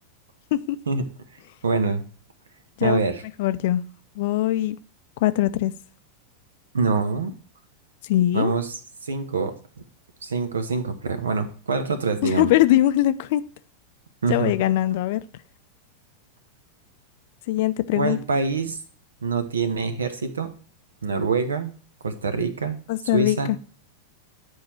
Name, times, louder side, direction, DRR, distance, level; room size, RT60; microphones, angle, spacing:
voice 1, 1.6-2.0 2.8-3.2 6.7-7.3 8.3-9.5 10.2-12.5 14.2-14.5 17.9-18.8 19.2-20.5 21.0-21.7 22.0-22.8 23.1-23.6, right 4 dB, 70° right, 1.0 m, -25 dB
voice 2, 3.4-3.8 4.2-4.8 5.2-5.7 8.0-8.5 12.2-13.4 14.3-15.2 17.5-18.2 22.9-23.6, left 14 dB, 50° left, 0.5 m, -21 dB
9.9 x 4.7 x 4.4 m
figure-of-eight pair, 90°, 0 cm